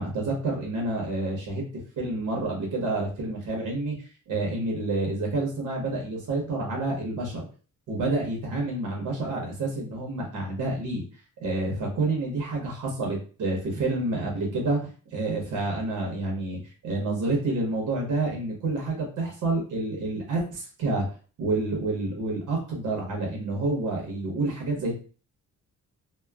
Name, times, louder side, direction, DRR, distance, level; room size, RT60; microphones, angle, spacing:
voice 1, 0.0-1.6 2.0-3.9 4.3-7.4 7.9-11.1 11.4-21.1 21.4-25.0, right 2 dB, 70° right, -1 dB, 0.9 m, -28 dB
3.0 x 2.0 x 2.3 m, 0.38 s
cardioid pair, 175°, 32 cm